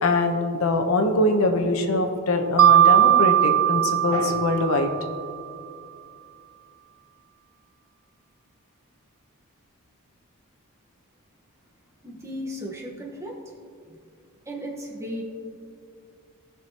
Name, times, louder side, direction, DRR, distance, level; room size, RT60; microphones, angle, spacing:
voice 1, 0.0-5.0, left 2 dB, 65° left, 4 dB, 0.9 m, -23 dB
Mallet percussion, 2.6-5.4, right 12 dB, 70° right, 0.4 m, -19 dB
voice 2, 12.0-13.3 13.9-14.0 14.4-15.2, equal, 15° right, -2 dB, 1.2 m, -35 dB
17.5 x 6.1 x 2.9 m, 2.3 s
head